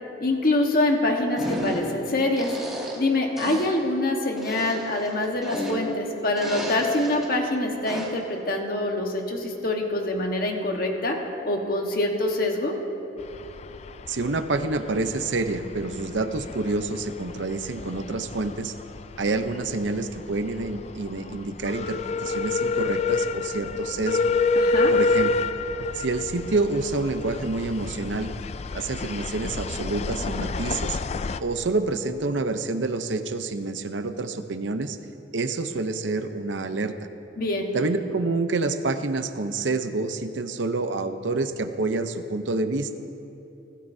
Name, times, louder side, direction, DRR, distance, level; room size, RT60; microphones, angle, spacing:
voice 1, 0.2-2.6 2.9-11.2 11.4-12.8 24.5-24.9 37.4-37.7, left 2 dB, 50° left, 2 dB, 1.3 m, -25 dB
sound 1, 1.4-2.0 2.4-3.1 3.4-3.8 4.4-6.0 6.4-7.3 7.9-8.3, equal, ahead, 2.1 m, -33 dB
sound 2, 13.2-31.4, left 3 dB, 35° left, 0.3 m, -29 dB
voice 2, 14.1-18.7 19.2-24.2 24.9-25.3 25.9-28.3 28.7-31.0 31.4-35.0 35.3-36.9 37.7-42.9, right 3 dB, 75° right, 9 dB, 0.8 m, -28 dB
25.0 x 13.0 x 2.8 m, 2.9 s
head